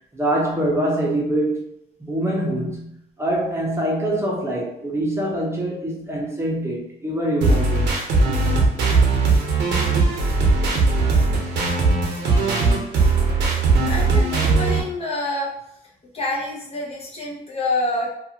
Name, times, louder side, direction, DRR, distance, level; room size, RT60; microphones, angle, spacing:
voice 1, 0.1-1.6 2.0-7.9, right 1 dB, 15° right, -3 dB, 0.6 m, -24 dB
sound 1, 7.4-14.8, right 3 dB, 85° right, 0.7 m, -19 dB
voice 2, 13.6-15.5 16.1-18.1, left 2 dB, 35° left, -4 dB, 0.8 m, -27 dB
2.5 x 2.3 x 2.7 m, 0.74 s
cardioid pair, 100°, 18 cm